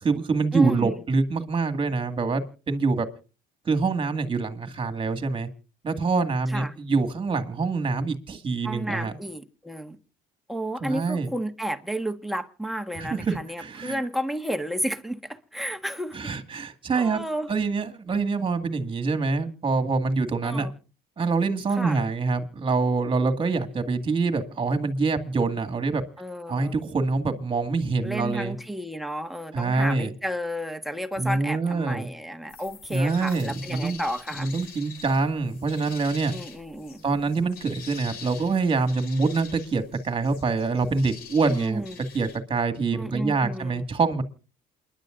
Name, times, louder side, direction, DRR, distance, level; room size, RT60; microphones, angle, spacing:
voice 1, 0.0-3.1 3.7-5.5 5.8-9.1 10.8-11.3 13.0-14.0 16.1-17.2 17.5-20.7 21.2-26.0 26.5-28.5 29.5-30.1 31.2-32.1 32.9-34.0 34.4-36.4 37.0-41.8 42.1-44.2, right 4 dB, 30° right, 2.1 m, -25 dB
voice 2, 0.5-1.0 6.5-6.7 8.6-10.0 10.5-16.2 16.9-17.5 20.4-20.7 21.7-22.0 26.2-26.8 28.0-34.5 36.3-37.0 41.5-41.9 42.9-43.8, equal, ahead, 1.4 m, -32 dB
sound 1, 32.5-42.4, left 6 dB, 65° left, 3.4 m, -45 dB
28.5 x 11.0 x 2.6 m
cardioid pair, 110°, 17 cm